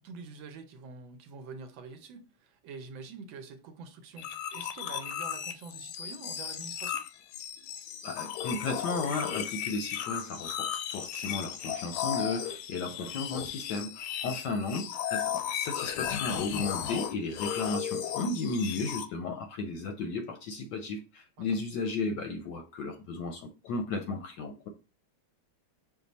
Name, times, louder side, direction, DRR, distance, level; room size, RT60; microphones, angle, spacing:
voice 1, 0.0-7.0 12.9-13.1 21.4-21.6, right 4 dB, 75° right, 1.4 m, -46 dB
sound 1, 4.2-19.1, left 9 dB, 90° left, 1.5 m, -35 dB
voice 2, 8.0-24.7, left 3 dB, 70° left, 1.1 m, -34 dB
6.0 x 2.2 x 4.0 m
omnidirectional pair, 2.3 m